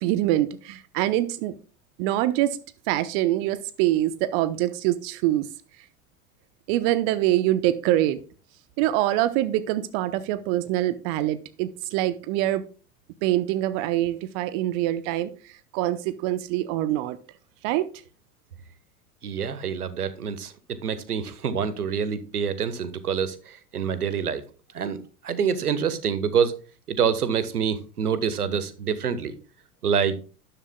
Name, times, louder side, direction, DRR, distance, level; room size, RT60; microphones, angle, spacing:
voice 1, 0.0-1.5 2.0-2.6 2.9-5.5 6.7-8.2 8.8-12.6 13.2-15.3 15.7-17.2 17.6-17.9, right 14 dB, 40° right, 0.8 m, -24 dB
voice 2, 19.2-24.4 24.7-25.0 25.2-26.6 26.9-29.3 29.8-30.2, right 7 dB, 75° right, 1.4 m, -26 dB
12.5 x 11.0 x 2.2 m
figure-of-eight pair, 85°, 46 cm